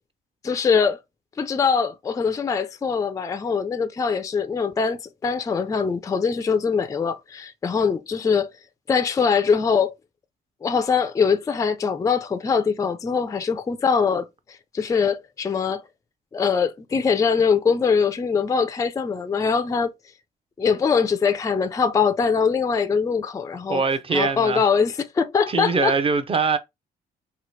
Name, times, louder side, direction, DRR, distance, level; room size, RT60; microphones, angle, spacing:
voice 1, 0.4-1.0 1.4-8.5 8.9-9.9 10.6-14.3 14.7-15.8 16.3-19.9 20.6-23.8 24.1-25.9, left 6 dB, 15° left, 0.3 m, -22 dB
voice 2, 23.7-24.7 25.5-26.6, right 4 dB, 30° right, 0.5 m, -22 dB
3.0 x 2.1 x 3.1 m
cardioid pair, 90°, 20 cm